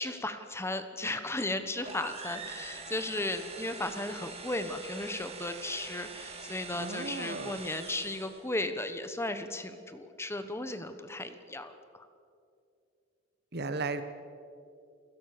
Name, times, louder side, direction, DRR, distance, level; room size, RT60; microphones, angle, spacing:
voice 1, 0.0-12.1, left 2 dB, 15° left, 9 dB, 1.2 m, -35 dB
sound 1, 1.8-8.5, right 4 dB, 30° right, 2.3 m, -44 dB
voice 2, 6.8-7.6 13.5-14.0, right 3 dB, 55° right, 10 dB, 1.5 m, -35 dB
28.5 x 17.0 x 6.7 m, 2.5 s
head